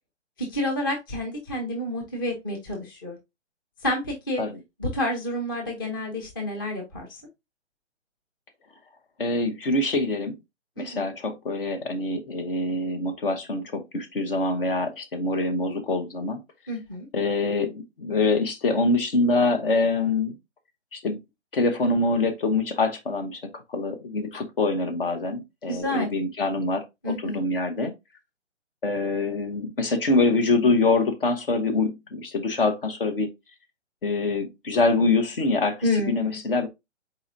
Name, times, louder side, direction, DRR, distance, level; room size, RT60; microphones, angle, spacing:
voice 1, 0.4-3.2 3.8-4.4 4.8-7.1 10.8-11.0 16.7-17.1 25.7-26.1 27.0-27.4 35.8-36.4, left 1 dB, 20° left, 0.7 m, -29 dB
voice 2, 9.2-10.4 10.8-16.4 17.1-20.4 20.9-21.2 21.5-27.9 28.8-33.3 34.0-36.7, left 3 dB, 50° left, 1.0 m, -25 dB
4.2 x 3.9 x 2.6 m
hypercardioid pair, 165°, 35 cm